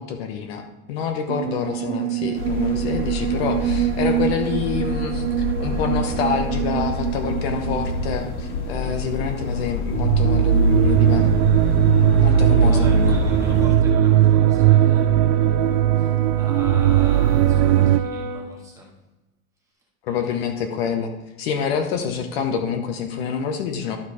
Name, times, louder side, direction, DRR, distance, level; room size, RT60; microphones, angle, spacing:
voice 1, 0.0-11.3 12.2-13.0 20.0-21.1 21.4-24.0, left 7 dB, 45° left, 6 dB, 0.9 m, -27 dB
sound 1, 1.3-8.7 9.1-9.5 9.9-18.0, right 10 dB, 55° right, 0.5 m, -20 dB
sound 2, 2.3-13.7, left 3 dB, 80° left, 2.1 m, -27 dB
voice 2, 12.3-19.0 20.1-20.7, right 2 dB, 5° right, -3 dB, 1.5 m, -41 dB
Brass instrument, 14.2-18.5, right 2 dB, 30° right, 0.8 m, -32 dB
12.0 x 4.5 x 4.8 m, 1.0 s
supercardioid pair, 160°, 43 cm